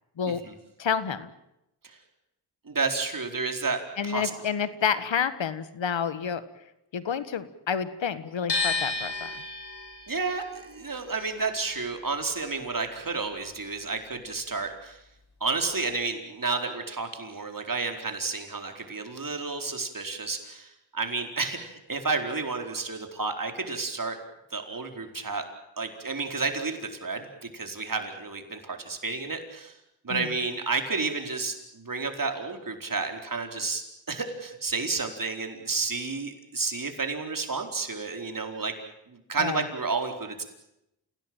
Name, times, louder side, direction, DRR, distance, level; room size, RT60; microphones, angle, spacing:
voice 1, 0.8-1.3 4.0-6.4 6.9-9.3 30.1-30.3 39.4-39.6, left 7 dB, 75° left, 13 dB, 1.7 m, -29 dB
voice 2, 2.7-4.3 10.1-15.0 15.4-24.2 24.5-25.4 25.8-29.7 30.0-38.7 39.1-40.4, right 4 dB, 45° right, 5 dB, 4.5 m, -31 dB
sound 1, 8.5-14.5 14.8-16.1, left 3 dB, 55° left, 7.8 m, -34 dB
28.5 x 17.5 x 9.0 m, 0.86 s
cardioid pair, 55°, 46 cm